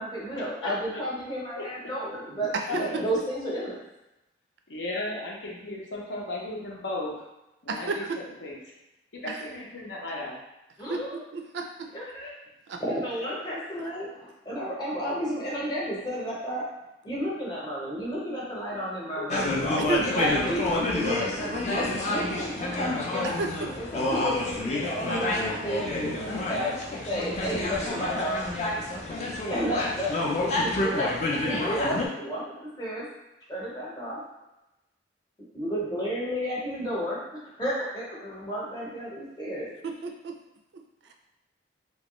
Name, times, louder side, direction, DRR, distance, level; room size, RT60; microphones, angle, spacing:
voice 1, 0.0-3.8 10.8-11.3 11.9-12.4 12.8-16.7 17.0-19.6 19.9-23.3 23.7-26.7 27.1-28.5 29.5-33.1 33.5-34.2 35.5-39.7, equal, 25° left, -6 dB, 0.8 m, -32 dB
voice 2, 0.6-1.0 1.6-1.7 2.7-3.1 4.7-7.1 7.6-8.0 8.4-8.6 9.1-10.4 19.2-20.1, left 2 dB, 75° left, -3 dB, 0.7 m, -35 dB
voice 3, 2.5-2.8 7.7-8.2 9.3-9.4 10.9-11.0 11.3-11.9 12.7-12.8 19.8-20.1 23.2-23.7 39.8-40.4, right 4 dB, 65° right, 3 dB, 0.4 m, -31 dB
sound 1, 19.3-32.1, left 2 dB, 40° left, 0.4 m, -28 dB
3.0 x 2.3 x 3.0 m, 0.94 s
head